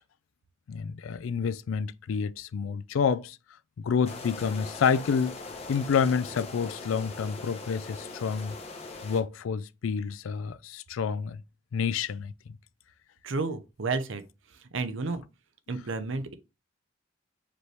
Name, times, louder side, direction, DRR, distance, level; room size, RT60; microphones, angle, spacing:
voice 1, 0.7-3.4 3.8-5.3 5.7-8.6 9.0-11.4 11.7-12.3, left 6 dB, 80° left, 0.4 m, -28 dB
sound 1, 4.0-9.2, left 3 dB, 30° left, 0.8 m, -41 dB
voice 2, 13.2-14.2 14.5-15.2 15.7-16.4, right 3 dB, 70° right, 0.6 m, -31 dB
5.0 x 3.0 x 3.2 m
head